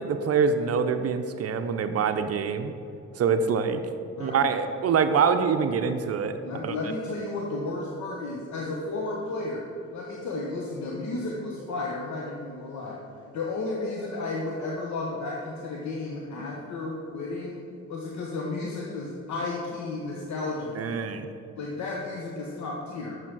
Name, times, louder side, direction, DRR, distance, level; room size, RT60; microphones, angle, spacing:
voice 1, 0.0-2.7 3.2-3.8 4.2-6.4 6.6-6.7 20.8-21.3, right 6 dB, 55° right, 8 dB, 0.6 m, -25 dB
voice 2, 4.2-4.6 6.4-9.7 9.9-13.0 13.3-17.6 17.9-21.0 21.6-23.2, left 2 dB, 65° left, -2 dB, 1.1 m, -33 dB
6.6 x 6.4 x 6.0 m, 2.7 s
cardioid pair, 90°, 30 cm